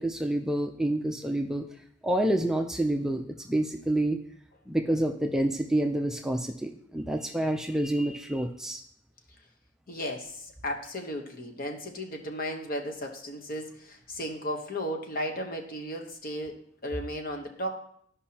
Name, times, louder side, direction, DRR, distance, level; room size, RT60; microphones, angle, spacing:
voice 1, 0.0-1.6 2.0-4.2 4.7-8.8, right 1 dB, 5° right, 2 dB, 0.4 m, -28 dB
voice 2, 9.9-16.6 16.8-17.7, equal, 50° left, 2 dB, 1.1 m, -35 dB
13.0 x 5.3 x 2.8 m, 0.67 s
head